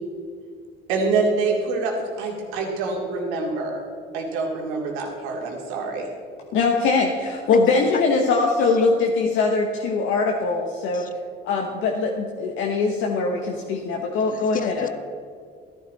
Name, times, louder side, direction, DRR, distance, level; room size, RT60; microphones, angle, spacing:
voice 1, 0.9-3.8 4.1-6.1, right 3 dB, 85° right, 0 dB, 2.5 m, -25 dB
voice 2, 6.5-11.0 11.4-14.9, left 4 dB, 70° left, 1 dB, 1.2 m, -22 dB
voice 3, 14.3-14.9, left 7 dB, 40° left, 11 dB, 0.9 m, -31 dB
12.5 x 11.0 x 4.2 m, 2.3 s
supercardioid pair, 90°, 21 cm